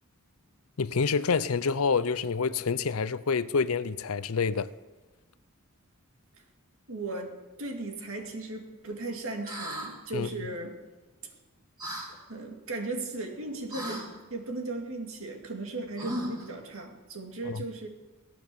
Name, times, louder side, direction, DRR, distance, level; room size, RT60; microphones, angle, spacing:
voice 1, 0.8-4.7 10.1-10.3 17.4-17.6, left 5 dB, 80° left, 0.6 m, -27 dB
voice 2, 6.9-10.8 11.2-11.3 12.3-17.9, right 2 dB, 70° right, 2.4 m, -37 dB
oh - Startled surprise, 9.4-9.9 11.8-12.1 13.7-14.0 16.0-16.5, equal, 20° right, 3.3 m, -35 dB
16.5 x 10.0 x 7.0 m
head